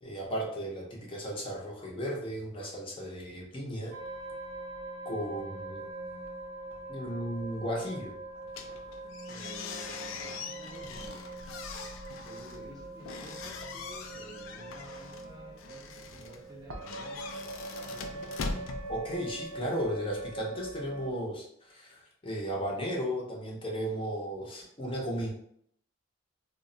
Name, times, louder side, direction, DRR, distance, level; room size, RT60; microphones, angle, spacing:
voice 1, 0.0-3.9 5.0-5.9 6.9-8.1 18.9-25.3, equal, 25° left, -2 dB, 0.6 m, -35 dB
sound 1, 3.9-21.1, right 2 dB, 90° right, 0.4 m, -43 dB
sound 2, 8.5-19.6, left 4 dB, 85° left, 0.4 m, -42 dB
voice 2, 9.3-11.2 12.2-17.3 17.7-18.3, right 1 dB, 20° right, -2 dB, 0.5 m, -51 dB
2.2 x 2.0 x 3.7 m, 0.68 s
head